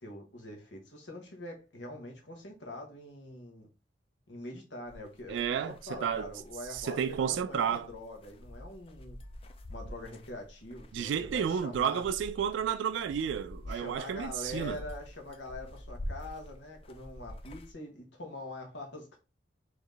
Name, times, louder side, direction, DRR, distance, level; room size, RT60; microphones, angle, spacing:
voice 1, 0.0-3.7 4.3-9.2 9.7-12.0 13.7-19.2, left 1 dB, 85° left, 1.3 m, -44 dB
sound 1, 4.9-17.7, left 1 dB, 30° left, 0.4 m, -47 dB
voice 2, 5.3-6.3 6.7-7.9 10.9-14.8, right 8 dB, 85° right, 0.3 m, -31 dB
3.8 x 3.0 x 3.3 m
head